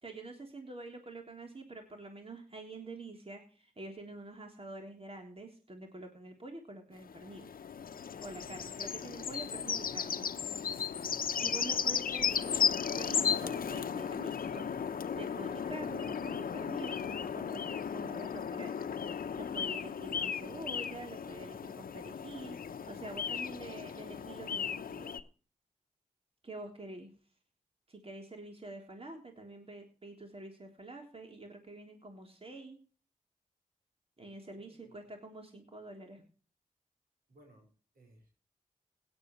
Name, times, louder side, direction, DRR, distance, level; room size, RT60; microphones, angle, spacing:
voice 1, 0.0-7.5 8.2-10.3 11.4-14.7 15.1-18.8 19.3-25.2 26.4-27.1 27.9-32.8 34.2-36.2, right 2 dB, 40° right, 3 dB, 3.4 m, -47 dB
sound 1, 7.0-25.2, left 7 dB, 75° left, 0.9 m, -35 dB
voice 2, 34.5-35.0 37.3-38.3, right 1 dB, 80° right, 2 dB, 5.4 m, -62 dB
17.0 x 11.0 x 3.1 m, 0.38 s
cardioid pair, 45°, 15 cm